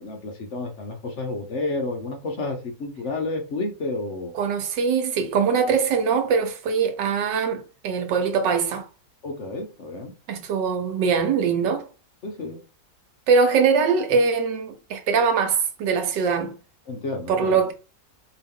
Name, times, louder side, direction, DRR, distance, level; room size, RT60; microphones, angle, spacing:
voice 1, 0.0-4.3 9.2-10.1 12.2-12.6 16.9-17.6, left 2 dB, 55° left, 0.9 m, -30 dB
voice 2, 4.3-8.9 10.3-11.9 13.3-16.6 17.3-17.7, right 5 dB, 85° right, 1.5 m, -22 dB
4.6 x 3.0 x 3.5 m
omnidirectional pair, 1.9 m